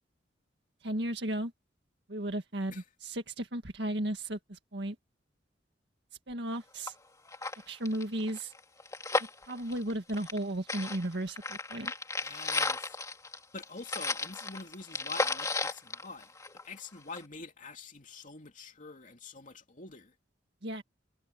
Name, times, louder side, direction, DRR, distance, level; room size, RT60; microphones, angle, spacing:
voice 1, 0.8-1.5 2.1-5.0 6.3-6.9 7.7-8.5 9.4-11.9 20.6-20.8, right 1 dB, 65° right, 2.0 m, -35 dB
sound 1, 6.5-6.6 6.9-7.0 7.3-10.4 10.7-16.8 17.2-17.3, left 3 dB, 20° left, 2.6 m, -34 dB
voice 2, 12.2-12.9 13.5-16.3 16.6-20.1, left 3 dB, 45° left, 2.8 m, -46 dB
head